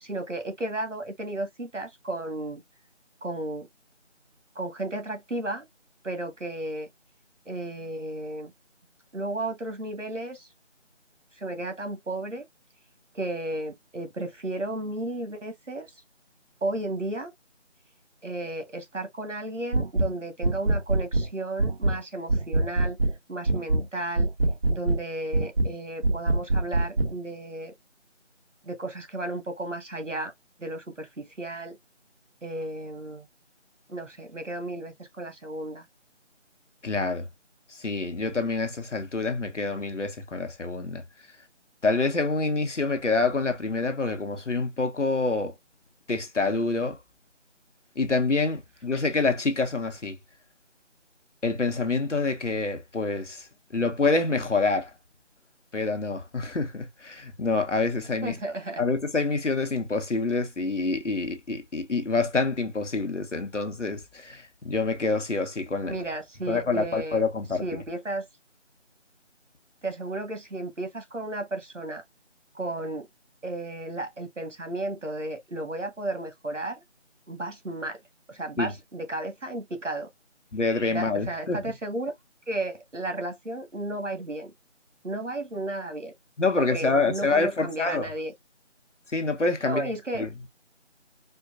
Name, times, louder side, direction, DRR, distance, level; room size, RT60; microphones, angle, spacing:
voice 1, 0.0-2.6 3.2-3.7 4.5-5.7 6.0-6.9 7.4-8.5 9.1-10.5 11.3-12.4 13.1-15.9 16.6-17.3 18.2-23.0 23.3-24.3 24.7-27.7 28.6-30.3 30.6-31.8 32.4-33.3 33.9-35.8 58.2-58.8 65.8-67.2 67.6-68.3 69.8-72.0 72.5-73.1 73.4-76.8 77.3-78.0 78.3-80.1 80.9-82.1 82.5-84.5 85.0-86.1 86.6-88.3 89.6-90.2, right 2 dB, 80° right, 1.6 m, -33 dB
sound 1, 19.7-20.1 20.4-21.3 21.6-22.0 22.3-23.2 23.5-23.9 24.2-25.0 25.3-25.7 26.0-27.1, right 2 dB, 55° right, 0.6 m, -24 dB
voice 2, 36.8-37.3 37.8-41.0 41.8-45.5 46.1-47.0 48.0-50.2 51.4-53.5 53.7-54.9 55.7-58.3 58.8-66.0 66.5-67.6 78.6-78.7 80.5-81.6 86.4-88.1 89.1-90.3, left 3 dB, 80° left, 1.1 m, -27 dB
4.4 x 2.4 x 2.4 m
figure-of-eight pair, 170°, 36 cm